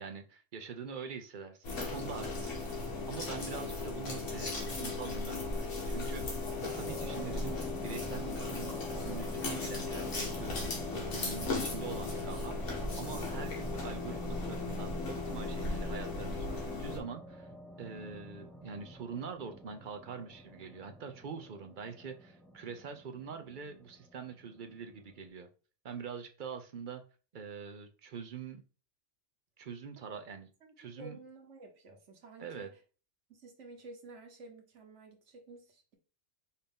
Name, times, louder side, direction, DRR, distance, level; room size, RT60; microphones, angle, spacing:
voice 1, 0.0-17.5 17.8-25.5 25.8-27.0 27.3-28.6 29.6-30.5 30.8-31.2 32.4-32.7, right 6 dB, 55° right, 0.6 m, -44 dB
sound 1, 1.6-17.0, left 3 dB, 75° left, 1.8 m, -37 dB
sound 2, 6.6-25.3, equal, ahead, 0.3 m, -48 dB
voice 2, 30.6-32.8 33.3-35.9, right 2 dB, 70° right, 1.4 m, -52 dB
5.6 x 2.7 x 3.5 m
omnidirectional pair, 1.3 m